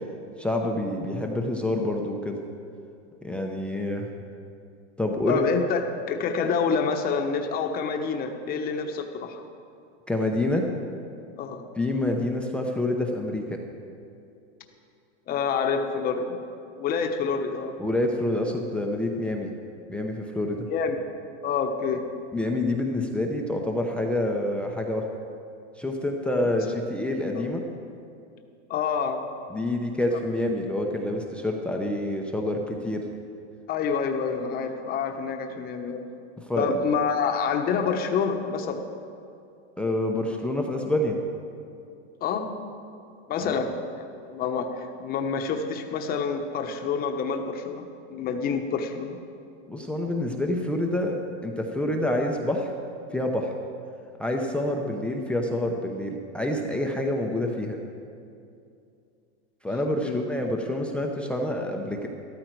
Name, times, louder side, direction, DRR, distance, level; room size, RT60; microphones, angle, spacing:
voice 1, 0.4-2.4 3.2-4.1 5.0-5.4 10.1-10.7 11.8-13.6 17.8-19.5 19.9-20.7 22.3-25.1 25.8-27.6 29.5-33.0 36.4-36.8 39.8-41.2 43.4-43.6 49.7-52.7 53.1-53.5 54.2-57.8 59.6-62.1, left 1 dB, 5° left, 1 dB, 0.6 m, -27 dB
voice 2, 5.3-5.8 6.1-9.4 11.4-11.6 15.3-16.4 16.8-17.7 20.7-21.0 21.4-22.1 26.4-26.5 27.3-27.5 28.7-29.2 30.1-30.2 33.7-36.1 36.6-38.8 42.2-42.6 43.3-49.2 60.0-60.2, left 5 dB, 25° left, 5 dB, 1.0 m, -27 dB
13.5 x 12.5 x 4.6 m, 2.5 s
supercardioid pair, 150°, 34 cm